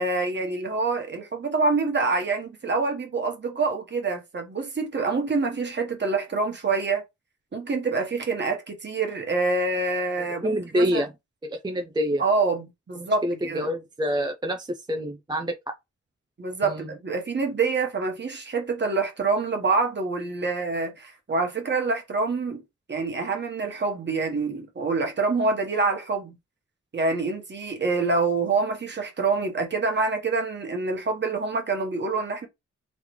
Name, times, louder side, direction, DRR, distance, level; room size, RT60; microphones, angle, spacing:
voice 1, 0.0-7.0 7.5-11.0 12.2-13.7 16.4-22.6 22.9-26.4 26.9-32.5, right 3 dB, 40° right, 1.2 m, -26 dB
voice 2, 10.4-11.1 11.4-12.2 13.2-15.5 16.7-16.9, equal, 15° right, 0.4 m, -26 dB
3.7 x 3.2 x 3.1 m
wide cardioid pair, 150°, 29 cm